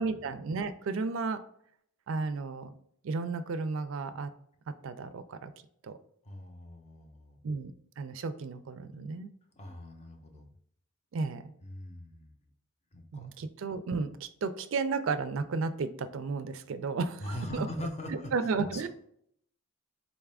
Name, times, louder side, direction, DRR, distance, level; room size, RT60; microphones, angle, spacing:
voice 1, 0.0-1.4 2.1-2.7 3.0-4.3 4.7-5.5 5.8-6.0 7.4-9.3 11.1-11.5 13.1-17.7 18.1-18.9, right 4 dB, 65° right, 11 dB, 0.4 m, -33 dB
voice 2, 6.2-7.4 9.5-10.5 11.6-12.3 12.9-13.3 17.2-18.3 18.7-18.9, left 1 dB, 30° left, 3 dB, 0.6 m, -41 dB
4.0 x 2.3 x 3.3 m, 0.68 s
head